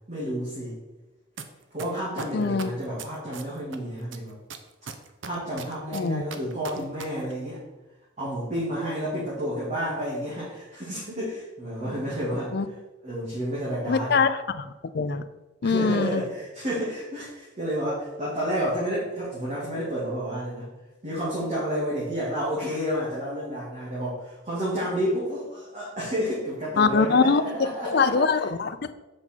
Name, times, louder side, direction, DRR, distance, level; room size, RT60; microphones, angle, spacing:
voice 1, 0.1-0.8 1.7-4.3 5.2-7.6 8.2-12.7 13.0-14.2 15.6-20.7 21.0-28.4, equal, 35° right, -8 dB, 2.2 m, -30 dB
sound 1, 1.4-1.5 1.8-3.8 4.1-7.0 7.3-7.4, right 5 dB, 70° right, 0.7 m, -37 dB
voice 2, 2.3-2.7 5.9-6.2 12.5-12.7 13.9-14.7 14.9-15.2 15.6-16.2 26.8-27.4 27.8-28.9, left 4 dB, 55° left, 11 dB, 0.5 m, -23 dB
7.8 x 5.5 x 4.4 m, 1.1 s
head